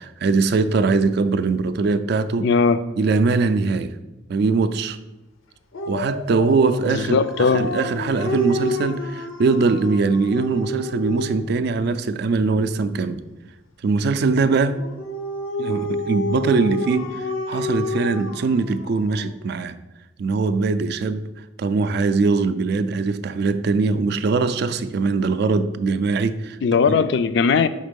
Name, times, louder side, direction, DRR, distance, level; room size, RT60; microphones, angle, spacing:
voice 1, 0.0-2.5 3.0-3.9 4.3-5.0 5.9-13.2 13.8-14.8 15.6-19.8 20.2-21.2 21.6-26.6, right 4 dB, 55° right, 0.3 m, -21 dB
voice 2, 2.4-2.8 6.9-7.7 26.6-27.7, left 5 dB, 60° left, 0.3 m, -18 dB
Dog, 5.7-11.6 14.7-19.3, left 1 dB, 90° left, 0.7 m, -29 dB
5.2 x 3.6 x 5.2 m
head